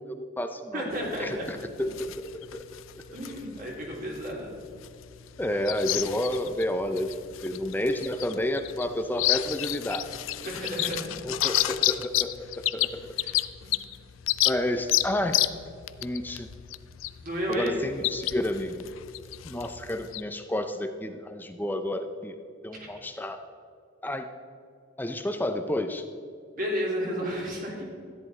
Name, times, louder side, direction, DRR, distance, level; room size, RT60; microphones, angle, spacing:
voice 1, 0.0-0.8 1.2-2.8 5.4-7.2 7.4-10.1 11.2-12.4 12.7-13.1 14.4-15.5 16.0-16.5 17.5-18.9 19.4-22.3 22.6-23.4 24.0-24.3 25.0-26.0, left 1 dB, 10° left, 7 dB, 0.5 m, -30 dB
voice 2, 0.7-1.5 1.8-1.9 3.1-4.5 10.4-11.1 13.2-13.3 17.2-17.8 26.5-27.8, equal, 45° right, -3 dB, 3.0 m, -32 dB
sound 1, 0.9-20.2, left 15 dB, 85° left, 0.4 m, -31 dB
13.5 x 10.5 x 4.1 m, 2.4 s
head